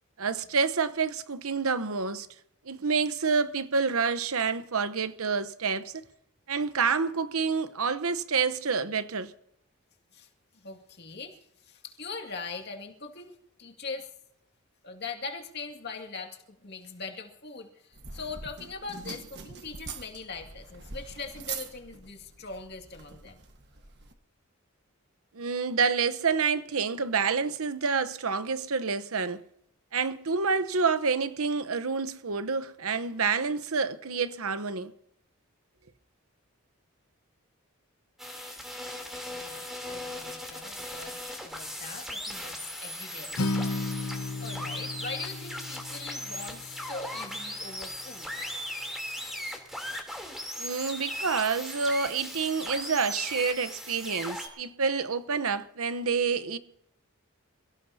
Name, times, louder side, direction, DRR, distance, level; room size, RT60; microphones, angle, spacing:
voice 1, 0.2-2.3 2.7-6.0 6.5-9.3 25.3-29.4 29.9-34.9 50.6-56.6, right 5 dB, 80° right, 1.0 m, -28 dB
voice 2, 10.1-14.1 14.8-23.4 39.3-48.3, left 4 dB, 50° left, 2.3 m, -42 dB
sound 1, 17.9-24.1, right 5 dB, 50° right, 1.5 m, -43 dB
sound 2, 38.2-54.5, left 1 dB, ahead, 3.2 m, -38 dB
Acoustic guitar, 43.4-47.6, left 2 dB, 80° left, 1.2 m, -34 dB
28.0 x 17.0 x 2.8 m
head